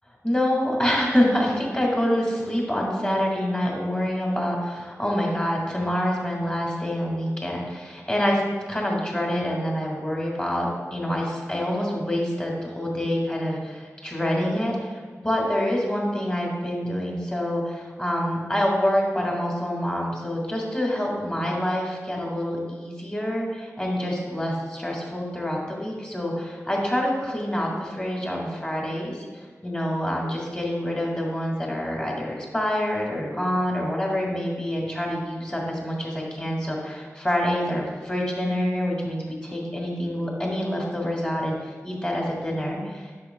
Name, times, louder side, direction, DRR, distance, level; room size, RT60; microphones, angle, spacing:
voice 1, 0.2-8.4 8.7-15.0 15.2-29.2 29.6-41.6 41.8-43.2, equal, 20° left, -2 dB, 1.8 m, -26 dB
8.4 x 6.1 x 2.3 m, 1.5 s
wide cardioid pair, 55°, 6 cm